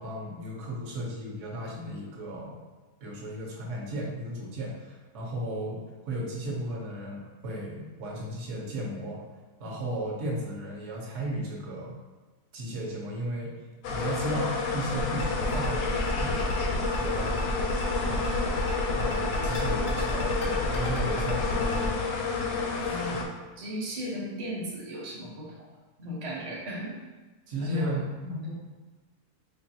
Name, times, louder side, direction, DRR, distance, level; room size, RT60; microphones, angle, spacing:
voice 1, 0.0-2.6 3.0-9.2 9.6-12.0 12.5-13.5 13.9-17.5 18.1-18.6 19.0-22.2 22.8-23.2 27.5-28.5, right 1 dB, 55° right, -3 dB, 1.1 m, -35 dB
sound 1, 13.8-23.2, left 4 dB, 80° left, 1.1 m, -30 dB
sound 2, 15.0-21.9, left 2 dB, 55° left, 0.7 m, -33 dB
voice 2, 22.9-23.2 23.6-25.5 26.0-27.0 27.6-27.9 28.3-28.5, equal, 35° right, -5 dB, 0.7 m, -36 dB
4.7 x 2.5 x 2.7 m, 1.3 s
omnidirectional pair, 1.7 m